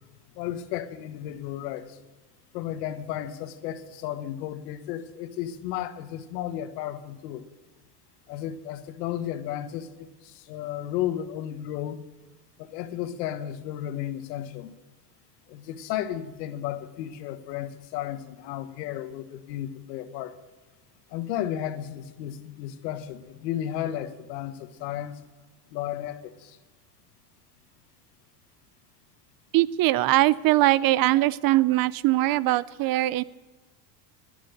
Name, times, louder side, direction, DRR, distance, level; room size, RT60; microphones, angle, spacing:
voice 1, 0.3-2.0 2.5-7.4 8.3-12.0 12.6-14.7 15.5-20.3 21.1-25.2 25.7-26.6, left 11 dB, 80° left, 11 dB, 1.2 m, -33 dB
voice 2, 29.5-33.2, right 16 dB, 45° right, 20 dB, 0.5 m, -21 dB
19.5 x 6.9 x 6.5 m, 1.2 s
supercardioid pair, 95°, 48 cm